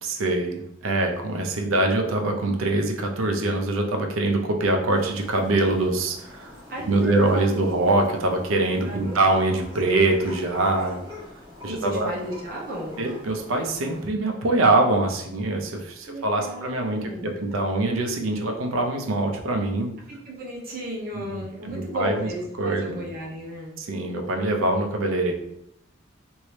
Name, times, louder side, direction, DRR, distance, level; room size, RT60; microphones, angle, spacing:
voice 1, 0.0-11.0 11.6-12.1 13.0-19.9 21.1-22.3 22.6-23.1 23.8-25.3, right 2 dB, 85° right, 3 dB, 0.6 m, -24 dB
sound 1, 4.9-14.1, left 1 dB, 25° right, 1.2 m, -44 dB
voice 2, 6.7-7.6 8.8-9.2 11.7-13.0 16.1-17.4 20.1-23.7, right 1 dB, 45° right, -3 dB, 0.9 m, -34 dB
3.0 x 2.7 x 3.2 m, 0.78 s
head